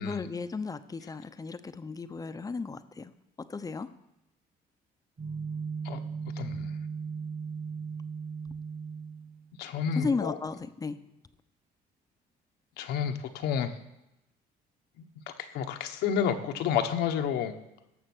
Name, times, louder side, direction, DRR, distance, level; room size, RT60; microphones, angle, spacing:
voice 1, 0.0-3.1 3.5-3.9 9.9-11.0, left 4 dB, 20° left, 11 dB, 0.7 m, -34 dB
sound 1, 5.2-9.5, right 5 dB, 30° right, 1.5 m, -37 dB
voice 2, 6.4-6.7 9.6-10.3 12.8-13.8 15.0-17.6, left 8 dB, 85° left, 6 dB, 1.2 m, -30 dB
17.0 x 6.6 x 6.3 m, 0.90 s
cardioid pair, 110°, 17 cm